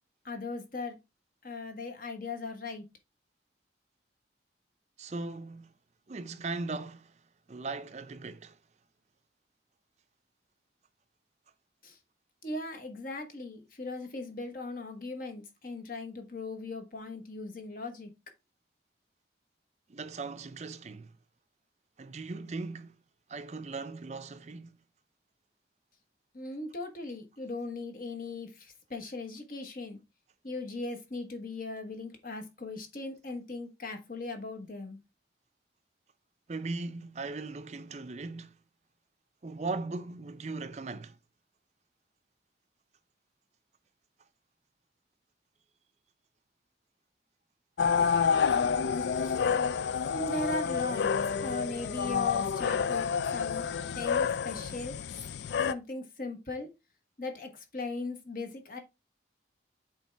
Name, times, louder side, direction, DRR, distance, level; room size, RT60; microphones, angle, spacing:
voice 1, 0.2-1.0 1.4-2.8 11.8-12.0 12.4-18.1 26.3-30.0 30.4-35.0 49.1-49.4 50.1-51.1 51.4-53.7 53.9-55.0 55.7-56.7 57.2-58.8, left 2 dB, 50° left, 1.2 m, -38 dB
voice 2, 5.0-5.7 6.1-7.1 7.5-8.6 19.9-21.1 22.0-22.9 23.3-24.7 36.5-38.6 39.4-41.1, right 3 dB, 40° right, 0.5 m, -38 dB
sound 1, 47.8-55.7, left 6 dB, 70° left, 0.3 m, -29 dB
8.3 x 3.4 x 3.3 m
head